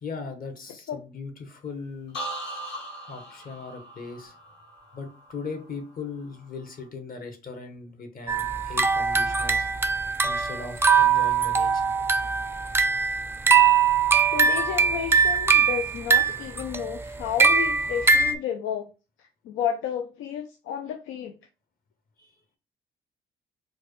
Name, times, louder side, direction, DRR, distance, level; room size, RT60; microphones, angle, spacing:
voice 1, 0.0-2.2 3.1-4.3 4.9-9.7 10.2-11.8 22.2-22.3, left 4 dB, 45° left, 1.0 m, -39 dB
sound 1, 2.1-5.9 6.3-6.8, right 1 dB, 65° left, 1.5 m, -39 dB
sound 2, 8.3-18.3, right 5 dB, 10° right, 0.4 m, -22 dB
voice 2, 14.3-18.9 19.2-21.3, left 9 dB, 85° left, 0.4 m, -32 dB
4.4 x 2.2 x 3.0 m
cardioid pair, 90°, 20 cm